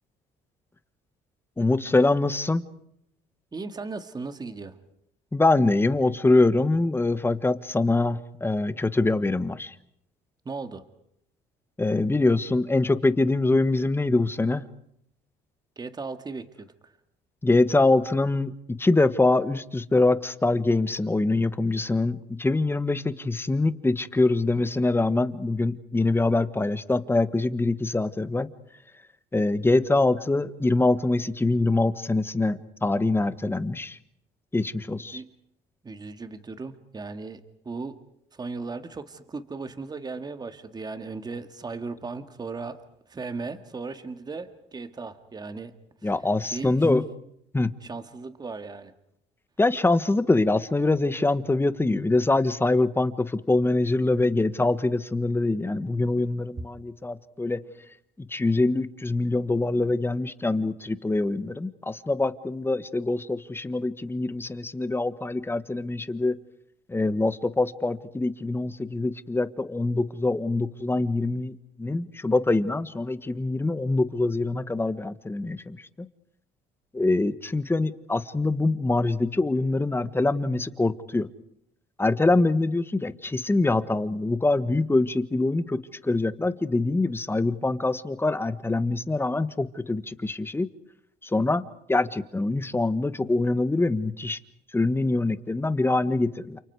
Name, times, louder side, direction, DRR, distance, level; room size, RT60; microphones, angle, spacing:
voice 1, 1.6-2.6 5.3-9.7 11.8-14.6 17.4-28.5 29.3-34.0 34.5-35.2 46.0-47.0 47.5-47.7 49.6-57.6 58.2-66.3 66.9-75.9 76.9-81.3 82.0-90.7 91.2-91.6 91.9-94.4 94.7-96.6, left 2 dB, 15° left, 13 dB, 1.4 m, -24 dB
voice 2, 3.5-4.8 10.5-10.8 15.8-16.9 35.1-35.3 35.8-38.0 38.3-42.8 43.1-45.7 46.5-46.7 47.8-48.9, right 4 dB, 25° right, 9 dB, 2.0 m, -36 dB
30.0 x 28.5 x 4.8 m, 0.74 s
cardioid pair, 110°, 17 cm